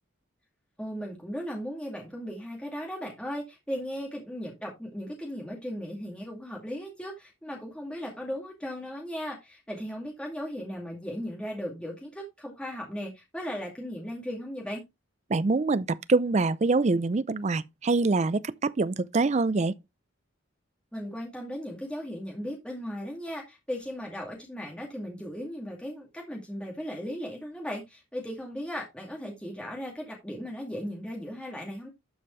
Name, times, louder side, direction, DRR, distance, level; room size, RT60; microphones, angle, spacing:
voice 1, 0.8-14.8 20.9-31.9, equal, 5° left, 2.3 m, -37 dB
voice 2, 15.3-19.7, right 3 dB, 30° right, 0.4 m, -25 dB
12.0 x 5.3 x 3.2 m
head